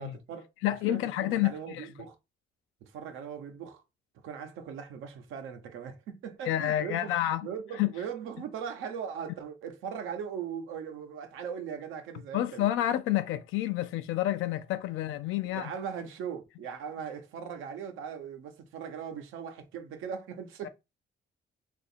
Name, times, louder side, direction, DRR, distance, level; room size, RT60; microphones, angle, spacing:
voice 1, 0.0-2.2 2.8-3.8 4.2-7.2 7.4-12.9 15.5-20.7, right 7 dB, 90° right, 0.8 m, -39 dB
voice 2, 0.6-1.9 6.5-7.5 7.8-7.9 12.3-15.7 20.6-20.7, left 13 dB, 90° left, 0.4 m, -29 dB
2.8 x 2.5 x 4.1 m
cardioid pair, 90°, 20 cm